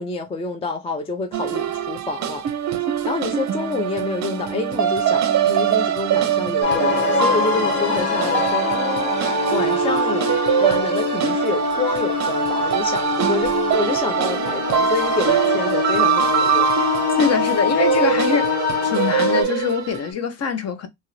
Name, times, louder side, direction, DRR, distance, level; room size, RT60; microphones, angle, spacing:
voice 1, 0.0-2.4 3.0-10.3 10.6-16.7, left 4 dB, 15° left, 0.4 m, -28 dB
sound 1, 1.3-20.1, right 8 dB, 45° right, 0.6 m, -23 dB
sound 2, 6.6-19.4, left 3 dB, 80° left, 1.7 m, -23 dB
voice 2, 17.2-18.5 18.8-20.9, left 6 dB, 40° left, 0.7 m, -23 dB
2.8 x 2.4 x 3.1 m
cardioid pair, 115°, 40 cm